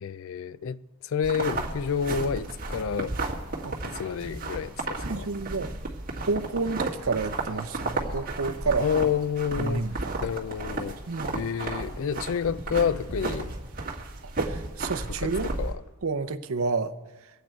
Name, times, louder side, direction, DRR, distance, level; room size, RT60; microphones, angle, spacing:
voice 1, 0.0-3.2 3.8-5.3 8.8-11.0 11.3-13.6 15.2-15.3 15.6-15.8, left 7 dB, 60° left, 0.4 m, -29 dB
sound 1, 1.2-15.7, right 2 dB, 40° right, 1.8 m, -33 dB
voice 2, 3.6-4.0 5.0-5.7 6.3-8.9 9.6-10.2 11.1-11.4 14.2-15.5 16.0-16.9, right 4 dB, 65° right, 0.7 m, -30 dB
23.5 x 8.5 x 4.5 m
head